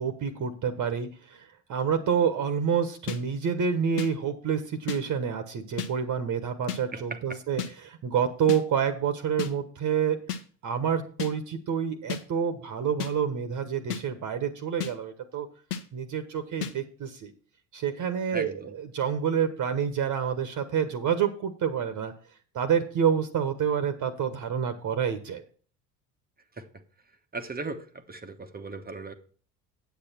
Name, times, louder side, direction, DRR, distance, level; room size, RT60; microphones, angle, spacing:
voice 1, 0.0-10.2 10.6-15.5 15.9-17.3 17.7-22.1 22.5-25.4, right 7 dB, 40° right, 1.3 m, -28 dB
sound 1, 3.1-3.2 4.0-4.1 4.9-5.0 5.8-5.9 6.7-6.8 7.6-7.7 8.5-8.6 9.4-9.5 10.3-10.4 11.2-11.3 12.1-12.2 13.0-13.1 13.9-14.0 14.8-14.9 15.7-15.8 16.6-16.7, left 8 dB, 75° left, 1.2 m, -32 dB
voice 2, 6.9-7.4 18.3-18.7 26.5-26.7 27.3-29.1, right 3 dB, 20° right, 1.1 m, -37 dB
8.3 x 8.3 x 4.3 m
figure-of-eight pair, 65°, 47 cm